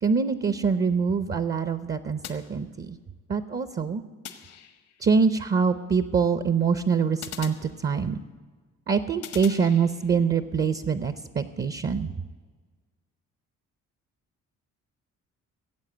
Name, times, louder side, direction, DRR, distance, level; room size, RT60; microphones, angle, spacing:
voice 1, 0.0-3.0 3.3-4.0 5.0-8.2 8.9-12.1, right 5 dB, 35° right, 12 dB, 0.6 m, -24 dB
sound 1, 2.2-3.2 4.2-5.1 7.2-8.3 9.2-10.3, left 9 dB, 85° left, 1.4 m, -43 dB
17.0 x 8.1 x 7.9 m, 1.4 s
cardioid pair, 90°, 30 cm